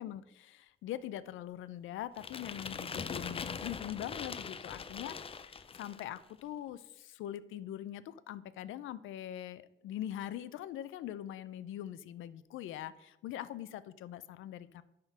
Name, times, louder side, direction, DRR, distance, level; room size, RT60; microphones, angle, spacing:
voice 1, 0.0-14.8, left 12 dB, 80° left, 16 dB, 0.5 m, -42 dB
sound 1, 2.2-6.2, left 5 dB, 30° left, 0.5 m, -42 dB
10.5 x 3.7 x 5.9 m, 0.88 s
cardioid pair, 90°, 20 cm